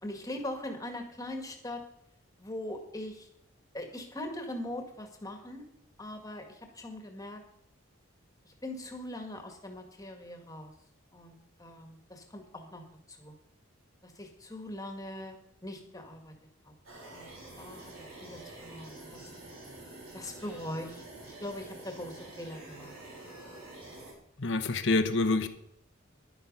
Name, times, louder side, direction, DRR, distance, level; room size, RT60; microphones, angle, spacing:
voice 1, 0.0-1.8 2.4-3.3 3.7-5.6 6.0-7.4 8.5-10.7 11.1-12.8 13.1-13.3 14.0-16.3 16.6-16.7 17.1-19.2 20.1-22.9, left 1 dB, 15° left, 4 dB, 1.8 m, -41 dB
sound 1, 16.8-24.1, right 2 dB, 80° right, 4.7 m, -47 dB
voice 2, 24.4-25.5, left 3 dB, 60° left, 7 dB, 1.0 m, -26 dB
11.0 x 10.0 x 5.4 m, 0.73 s
head